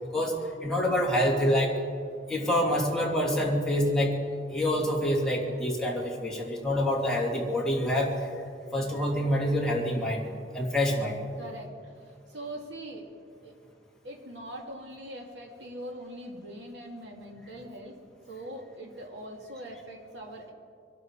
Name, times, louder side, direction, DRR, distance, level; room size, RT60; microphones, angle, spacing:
voice 1, 0.0-1.8 2.3-4.2 4.5-8.1 8.7-11.2, equal, 5° left, -4 dB, 2.8 m, -27 dB
voice 2, 11.4-13.1 13.4-13.5 14.0-18.0 18.3-20.5, right 1 dB, 70° right, 1 dB, 2.5 m, -42 dB
24.0 x 12.0 x 4.9 m, 2.2 s
head